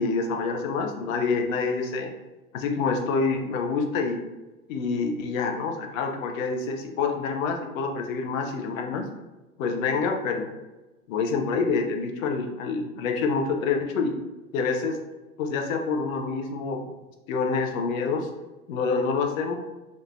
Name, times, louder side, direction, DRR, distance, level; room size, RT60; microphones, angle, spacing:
voice 1, 0.0-2.1 2.5-4.2 4.7-9.1 9.6-10.5 11.1-14.2 14.5-15.0 15.4-16.8 17.3-18.3 18.7-19.5, left 4 dB, 65° left, 4 dB, 0.7 m, -27 dB
3.6 x 2.6 x 2.4 m, 1.1 s
hypercardioid pair, 120°, 43 cm